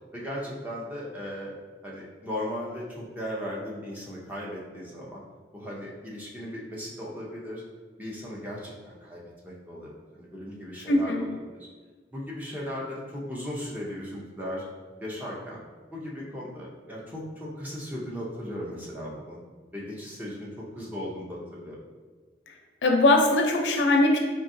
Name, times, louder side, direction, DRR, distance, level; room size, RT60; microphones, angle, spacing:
voice 1, 0.1-1.5 1.8-5.2 5.5-7.6 8.0-11.7 12.1-14.6 15.0-15.6 15.9-19.4 19.7-21.8, equal, 10° right, -5 dB, 0.6 m, -37 dB
voice 2, 10.9-11.2 22.8-24.2, left 2 dB, 85° left, 2 dB, 0.5 m, -21 dB
3.8 x 2.7 x 2.6 m, 1.4 s
head